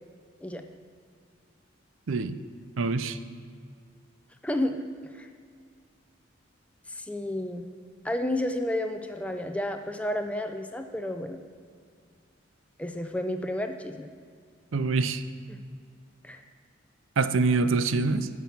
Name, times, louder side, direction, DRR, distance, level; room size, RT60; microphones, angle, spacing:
voice 1, 2.1-2.4 2.8-3.2 14.7-15.2 17.2-18.3, right 3 dB, 85° right, 12 dB, 0.6 m, -25 dB
voice 2, 4.4-4.8 5.1-5.3 6.9-7.7 8.0-11.4 12.8-14.1 15.5-15.6 16.2-16.4, left 1 dB, 5° left, 6 dB, 0.5 m, -31 dB
13.0 x 6.0 x 7.2 m, 2.1 s
head